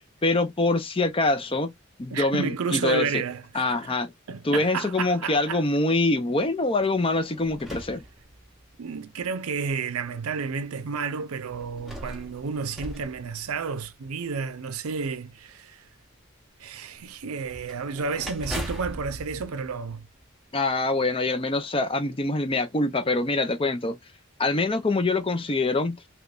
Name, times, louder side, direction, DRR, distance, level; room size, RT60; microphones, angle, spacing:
voice 1, 0.2-1.7 2.0-3.2 3.5-4.1 4.4-8.0 20.5-24.0 24.4-26.0, left 2 dB, 25° left, 0.5 m, -24 dB
voice 2, 2.1-3.8 4.3-5.6 8.8-15.9 16.6-20.0, right 5 dB, 85° right, 0.5 m, -31 dB
sound 1, 6.8-8.8 9.6-9.7 11.5-14.1 17.5-20.5, equal, ahead, 0.9 m, -40 dB
3.3 x 3.0 x 2.4 m
head